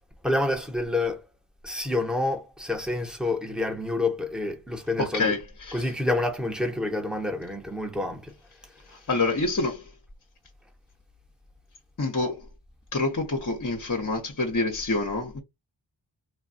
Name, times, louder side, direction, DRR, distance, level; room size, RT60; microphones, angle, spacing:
voice 1, 0.2-1.3 1.6-5.4 5.7-8.3, left 2 dB, ahead, 0.8 m, -28 dB
voice 2, 5.0-5.9 8.9-9.9 12.0-12.5 12.9-15.4, left 3 dB, 40° left, 0.7 m, -27 dB
3.3 x 2.2 x 2.5 m
wide cardioid pair, 50°, 50 cm